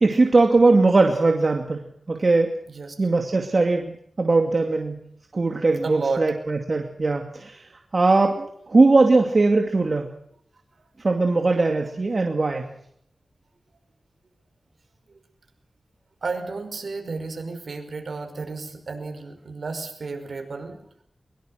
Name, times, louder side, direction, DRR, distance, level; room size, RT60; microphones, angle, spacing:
voice 1, 0.0-1.8 2.1-2.5 3.0-3.9 4.2-5.0 5.3-7.7 7.9-10.1 11.0-12.6, right 3 dB, 45° right, 3 dB, 2.5 m, -20 dB
voice 2, 5.8-6.2 16.2-20.8, right 4 dB, 65° right, 6 dB, 5.4 m, -32 dB
23.0 x 22.5 x 6.5 m, 0.69 s
wide cardioid pair, 80°, 0 cm